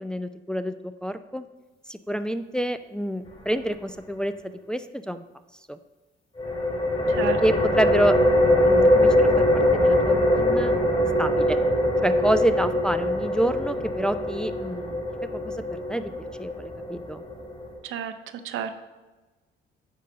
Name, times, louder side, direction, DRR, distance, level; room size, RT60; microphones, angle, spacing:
voice 1, 0.0-1.5 1.9-5.2 5.7-5.8 7.4-8.2 8.4-10.7 11.2-11.6 12.0-15.0 15.3-16.1 16.4-17.2, right 1 dB, 5° left, 10 dB, 0.4 m, -28 dB
sound 1, 6.4-17.8, left 1 dB, 25° left, 2.7 m, -22 dB
voice 2, 18.4-18.8, right 9 dB, 85° right, 9 dB, 0.7 m, -30 dB
8.4 x 4.2 x 6.3 m, 1.2 s
cardioid pair, 90°, 20 cm